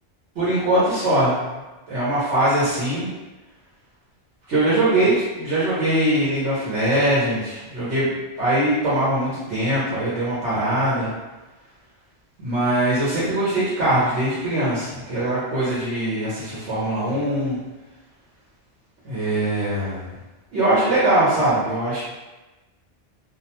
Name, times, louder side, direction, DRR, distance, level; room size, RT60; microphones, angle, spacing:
voice 1, 0.4-1.4 1.9-3.1 4.5-11.1 12.4-17.6 19.0-20.1 20.5-22.0, right 1 dB, 80° right, -9 dB, 1.1 m, -22 dB
2.4 x 2.1 x 2.8 m, 1.1 s
omnidirectional pair, 1.2 m